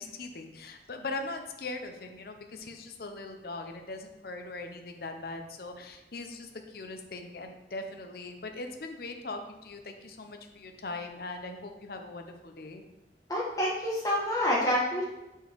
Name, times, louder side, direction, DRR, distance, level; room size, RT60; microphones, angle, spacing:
voice 1, 0.0-12.8, left 3 dB, 55° left, 5 dB, 0.6 m, -40 dB
voice 2, 13.3-15.0, equal, 20° left, -5 dB, 1.4 m, -27 dB
5.2 x 4.6 x 4.5 m, 0.98 s
head